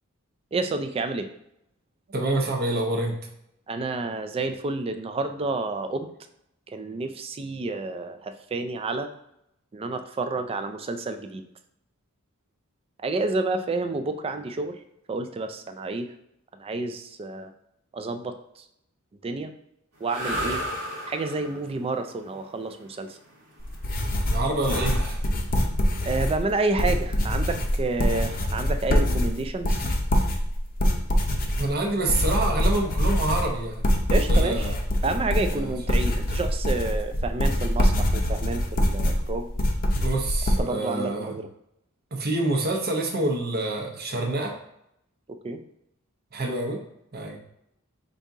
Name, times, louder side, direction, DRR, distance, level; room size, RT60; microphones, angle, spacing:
voice 1, 0.5-1.3 3.7-6.1 6.7-9.1 9.7-11.4 13.0-14.8 15.1-16.1 16.6-17.5 17.9-18.6 19.2-19.5 20.0-20.6 21.1-23.2 26.0-29.8 34.1-34.7 35.0-39.5 40.6-41.5 45.3-45.6, right 3 dB, 25° right, 8 dB, 0.3 m, -29 dB
voice 2, 2.1-3.2 24.3-25.2 31.6-33.8 34.3-34.8 35.5-35.7 39.9-41.4 42.1-44.6 46.3-46.8 47.1-47.4, right 2 dB, 45° right, 2 dB, 0.8 m, -27 dB
sound 1, 20.0-28.0, equal, 90° right, 1.4 m, -36 dB
sound 2, 23.6-40.6, equal, 40° left, 0.6 m, -24 dB
5.2 x 2.7 x 3.5 m, 0.79 s
head